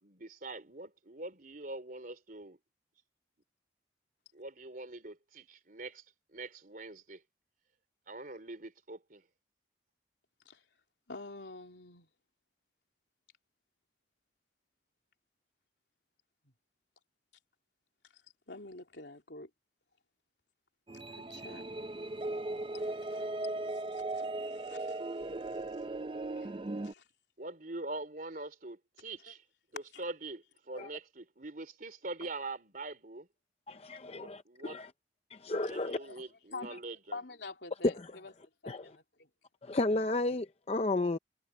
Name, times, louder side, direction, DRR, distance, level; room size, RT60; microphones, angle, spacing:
voice 1, 0.0-2.6 4.3-6.0 6.3-7.2 8.1-9.2 27.4-29.4 29.7-33.3 34.2-34.9 35.7-37.2, right 2 dB, 50° right, 3.7 m, -43 dB
voice 2, 11.1-12.1 18.1-18.2 18.5-19.5 21.1-21.6 22.7-23.3 23.7-25.0 26.3-27.0 29.3-29.4 29.9-30.0 35.6-36.2 36.5-36.8 37.1-39.3 39.9-40.1, left 3 dB, 70° left, 3.1 m, -48 dB
sound 1, 20.9-26.9, right 2 dB, 25° right, 0.5 m, -38 dB
voice 3, 33.7-34.9 35.3-36.0 38.7-38.9 39.6-41.2, left 2 dB, 35° left, 0.6 m, -33 dB
head